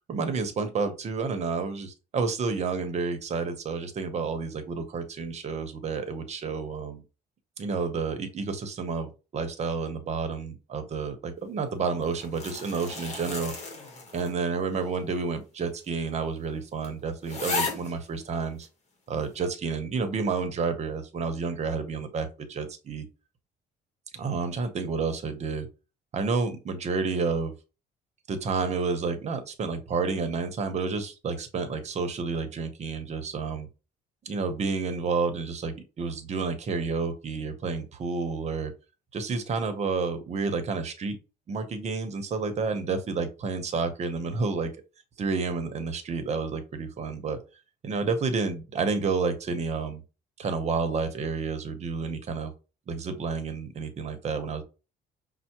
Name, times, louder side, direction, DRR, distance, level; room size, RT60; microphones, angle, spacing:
voice 1, 0.1-7.0 7.6-13.5 14.1-18.7 19.1-23.1 24.1-25.7 26.1-27.5 28.3-33.7 34.2-38.7 39.1-41.2 41.5-44.7 45.2-47.4 47.8-50.0 50.4-52.5 52.9-54.6, right 4 dB, 40° right, 8 dB, 0.7 m, -30 dB
sound 1, 12.0-14.5 14.8-14.9 15.7-15.8 16.2-16.3 16.8-16.9 17.2-17.9 18.6-18.7, left 3 dB, 40° left, 1.2 m, -34 dB
5.5 x 2.0 x 2.8 m, 0.32 s
cardioid pair, 110°, 17 cm